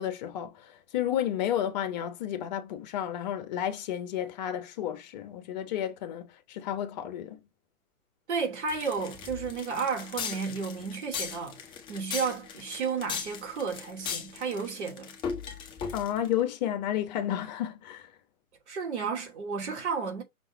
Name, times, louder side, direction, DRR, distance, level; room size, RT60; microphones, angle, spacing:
voice 1, 0.0-7.4 15.9-18.1, left 10 dB, 30° left, 1.2 m, -32 dB
voice 2, 8.3-11.6 11.9-15.1 18.7-20.2, right 5 dB, 50° right, 2.8 m, -32 dB
sound 1, 8.7-16.3, left 6 dB, 10° left, 0.9 m, -37 dB
6.2 x 3.7 x 4.2 m
figure-of-eight pair, 125°, 43 cm